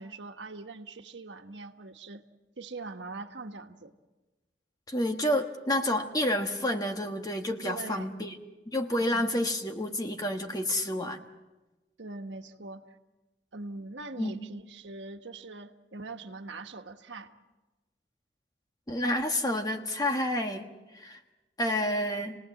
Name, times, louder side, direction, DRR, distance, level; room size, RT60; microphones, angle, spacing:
voice 1, 0.0-2.2 2.6-3.9 7.6-8.2 9.1-9.2 12.0-13.0 13.5-17.3, right 3 dB, 75° right, 6 dB, 1.4 m, -42 dB
voice 2, 4.9-8.3 8.7-11.2 14.2-14.5 18.9-20.7 20.9-21.2 21.6-22.4, left 1 dB, 20° left, 4 dB, 1.4 m, -29 dB
29.5 x 19.0 x 7.8 m, 1.1 s
head